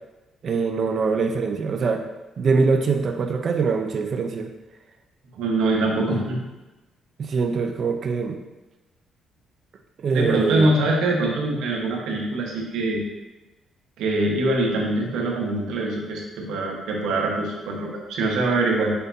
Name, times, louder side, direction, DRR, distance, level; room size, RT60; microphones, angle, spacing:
voice 1, 0.4-2.0 2.4-4.5 6.1-6.3 7.2-8.4 10.0-10.7, right 4 dB, 50° right, 5 dB, 0.7 m, -23 dB
voice 2, 5.4-6.4 10.1-13.0 14.0-18.9, right 2 dB, 85° right, -1 dB, 1.3 m, -23 dB
6.8 x 5.2 x 2.8 m, 1.1 s
cardioid pair, 90°, 0 cm